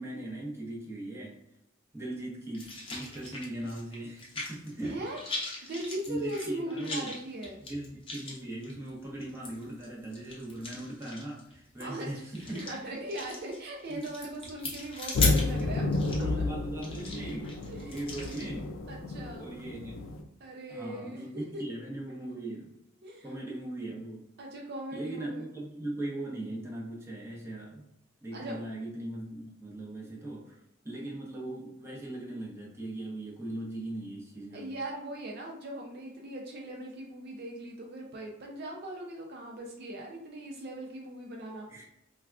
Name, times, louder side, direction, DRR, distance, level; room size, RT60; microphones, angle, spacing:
voice 1, 0.0-1.4 1.9-5.0 6.1-7.2 7.6-12.7 13.9-14.0 16.1-17.6 17.8-18.7 19.4-20.1 20.7-22.7 23.2-24.2 24.9-27.8 28.2-30.6 30.8-34.7 41.7-41.9, right 1 dB, 15° right, -4 dB, 0.7 m, -39 dB
sound 1, 2.5-4.8 5.1-18.5, left 3 dB, 30° left, 0.7 m, -39 dB
voice 2, 4.8-5.2 5.6-7.6 11.8-12.1 12.4-16.4 17.6-18.2 18.9-19.5 20.4-21.6 23.0-23.4 24.4-25.4 28.3-28.5 34.5-41.9, right 1 dB, 55° right, 0 dB, 0.4 m, -40 dB
sound 2, 15.1-20.2, left 3 dB, 75° left, 0.4 m, -31 dB
3.4 x 2.3 x 2.3 m, 0.81 s
head